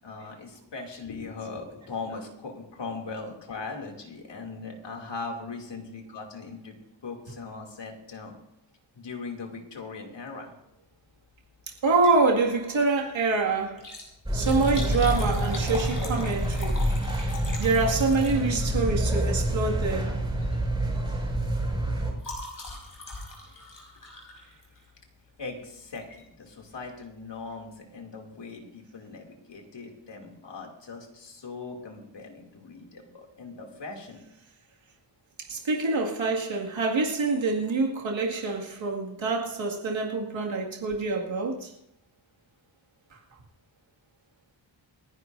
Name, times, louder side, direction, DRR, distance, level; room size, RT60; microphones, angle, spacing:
voice 1, 0.0-8.4 8.9-10.5 14.5-14.6 25.4-34.2, left 4 dB, 65° left, 2.9 m, -40 dB
Liquid, 11.8-12.3 12.6-12.7 13.6-18.8 19.8-20.0 20.4-20.6 20.9-25.0 25.9-26.2 26.7-26.8 27.0-27.1, left 2 dB, 45° left, 5.4 m, -41 dB
voice 2, 11.8-13.9 14.3-16.8 17.6-20.1 35.5-41.7, right 3 dB, 75° right, 2.3 m, -26 dB
sound 1, 14.3-22.1, right 1 dB, 10° right, 6.0 m, -27 dB
28.5 x 11.0 x 2.7 m
wide cardioid pair, 145°, 46 cm